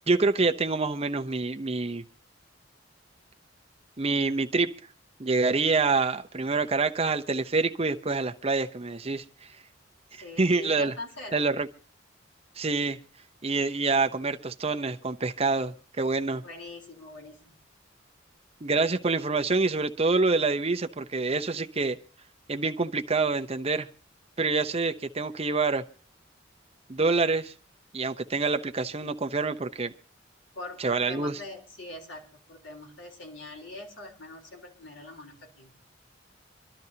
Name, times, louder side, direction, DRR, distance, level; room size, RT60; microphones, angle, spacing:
voice 1, 0.1-2.0 4.0-4.7 5.2-9.2 10.4-10.9 11.3-11.7 12.6-13.0 13.4-16.4 18.6-22.0 22.5-23.9 24.4-25.8 26.9-27.5 27.9-29.9 30.8-31.4, right 3 dB, 30° right, 7 dB, 0.8 m, -26 dB
voice 2, 10.2-11.5 16.4-17.6 30.6-35.8, left 2 dB, 75° left, 1 dB, 3.9 m, -42 dB
26.0 x 12.0 x 2.9 m, 0.38 s
head